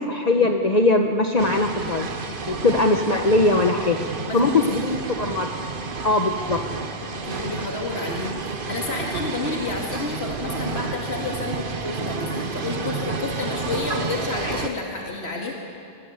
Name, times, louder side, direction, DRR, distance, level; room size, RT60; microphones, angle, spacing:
voice 1, 0.0-2.1 2.5-4.1 4.3-5.5 6.0-6.6, left 2 dB, 40° left, 3 dB, 1.2 m, -20 dB
sound 1, 1.4-14.7, right 4 dB, 55° right, 1.3 m, -30 dB
voice 2, 4.3-4.8 7.0-15.5, left 3 dB, 75° left, -1 dB, 2.6 m, -30 dB
23.5 x 19.5 x 8.2 m, 2.5 s
omnidirectional pair, 1.1 m